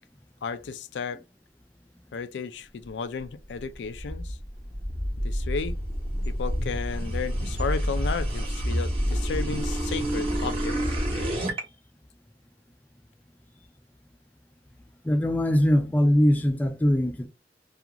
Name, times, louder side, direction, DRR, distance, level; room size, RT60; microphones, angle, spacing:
voice 1, 0.4-1.2 2.1-4.4 5.2-5.8 6.3-11.0, left 5 dB, 80° left, 0.4 m, -33 dB
sound 1, 3.6-11.6, equal, 30° right, 0.8 m, -28 dB
voice 2, 15.0-17.3, equal, 10° left, 0.3 m, -22 dB
2.4 x 2.4 x 2.8 m
head